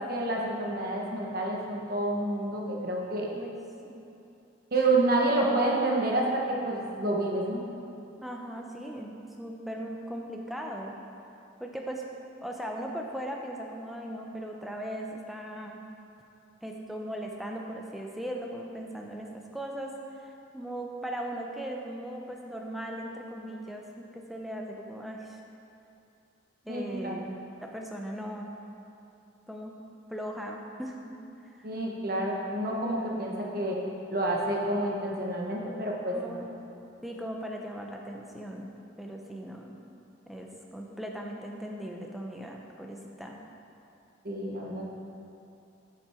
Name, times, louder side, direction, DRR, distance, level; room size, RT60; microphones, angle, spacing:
voice 1, 0.1-3.3 4.7-7.6 26.7-27.2 31.6-33.8 34.1-36.4 44.2-44.9, right 2 dB, 50° right, -1 dB, 1.2 m, -28 dB
voice 2, 8.2-11.0 11.6-12.0 12.4-15.8 16.6-25.4 26.6-28.5 29.5-29.8 30.1-31.1 31.4-31.7 36.1-36.5 37.0-38.7 39.0-39.8 40.3-43.4, equal, ahead, 0 dB, 0.6 m, -38 dB
8.4 x 7.5 x 4.4 m, 2.8 s
head